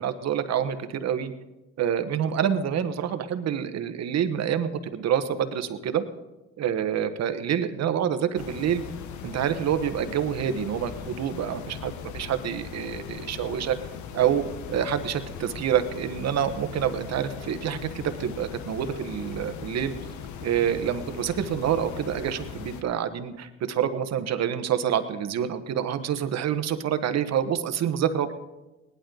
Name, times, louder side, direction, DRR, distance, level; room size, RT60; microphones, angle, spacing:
voice 1, 0.0-1.3 1.8-6.0 6.6-8.8 9.2-13.8 14.1-19.9 20.4-28.3, right 9 dB, 65° right, 9 dB, 1.2 m, -27 dB
sound 1, 8.4-22.8, left 7 dB, 80° left, 1.0 m, -39 dB
18.5 x 11.5 x 3.9 m, 1.1 s
cardioid pair, 100°, 29 cm